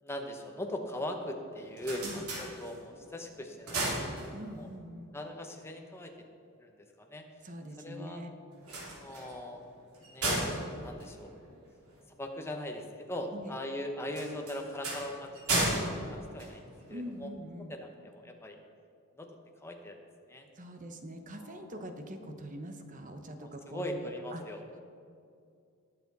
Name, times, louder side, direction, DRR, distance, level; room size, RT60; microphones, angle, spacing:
voice 1, 0.0-3.9 4.2-4.7 5.1-6.1 6.6-7.2 7.8-8.2 8.9-9.6 10.1-11.3 12.2-17.3 17.7-18.6 19.1-19.3 19.6-20.0 20.3-20.5 21.4-21.8 23.4-24.8, left 1 dB, 10° left, 3 dB, 1.0 m, -40 dB
sound 1, 1.5-3.1 3.4-4.8 8.5-12.0 14.1-17.1, right 2 dB, 90° right, 2.8 m, -35 dB
voice 2, 4.3-5.2 7.4-8.3 13.3-13.5 16.9-17.7 20.6-24.0 24.3-24.4, equal, 35° right, 6 dB, 1.0 m, -43 dB
20.0 x 7.1 x 4.1 m, 2.4 s
head